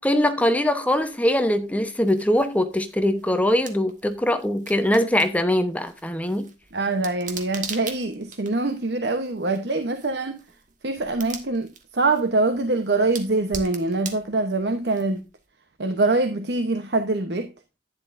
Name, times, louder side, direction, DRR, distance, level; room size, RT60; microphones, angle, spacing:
voice 1, 0.0-6.5, left 1 dB, 10° left, 0.9 m, -22 dB
sound 1, 0.9-15.4, right 6 dB, 45° right, 1.5 m, -42 dB
voice 2, 6.7-10.4 10.8-15.2 15.8-17.5, right 2 dB, 65° right, 0.9 m, -24 dB
11.0 x 10.0 x 2.6 m
head